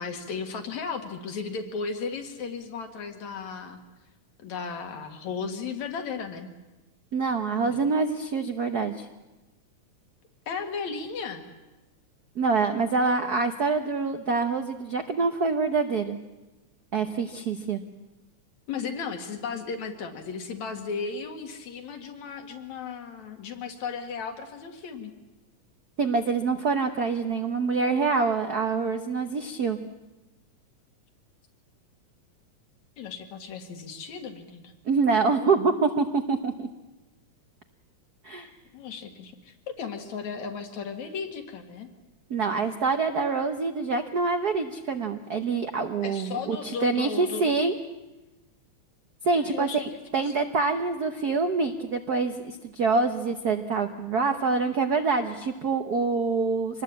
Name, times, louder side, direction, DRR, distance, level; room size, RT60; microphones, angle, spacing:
voice 1, 0.0-3.8 4.4-6.5 7.6-7.8 10.5-11.5 18.7-25.1 33.0-34.7 38.7-41.9 46.0-47.5 49.3-49.8 50.1-50.3, left 5 dB, 75° left, 5 dB, 3.3 m, -35 dB
voice 2, 7.1-9.1 12.4-16.2 16.9-17.8 26.0-29.8 34.9-36.7 38.2-38.5 42.3-47.7 49.2-56.8, right 4 dB, 85° right, 6 dB, 0.8 m, -26 dB
25.0 x 20.0 x 8.5 m, 1.1 s
omnidirectional pair, 3.3 m